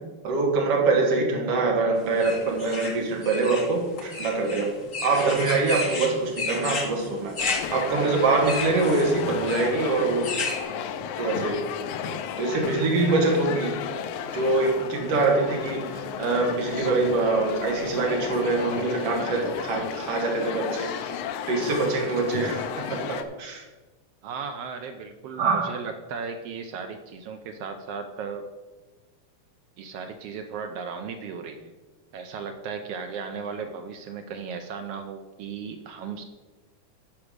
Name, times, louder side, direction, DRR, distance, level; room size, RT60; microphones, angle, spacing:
voice 1, 0.2-4.7 5.0-7.3 7.7-10.3 11.2-11.6 12.4-13.7 14.3-21.2 21.5-23.6 25.4-25.7, right 3 dB, 55° right, -1 dB, 2.6 m, -24 dB
sound 1, 2.2-10.6, left 3 dB, 60° left, 0.8 m, -32 dB
sound 2, 7.4-23.2, left 8 dB, 85° left, 2.0 m, -33 dB
voice 2, 24.2-28.4 29.8-31.7 32.1-36.2, right 5 dB, 80° right, 6 dB, 1.4 m, -36 dB
10.5 x 4.8 x 6.5 m, 1.2 s
omnidirectional pair, 3.4 m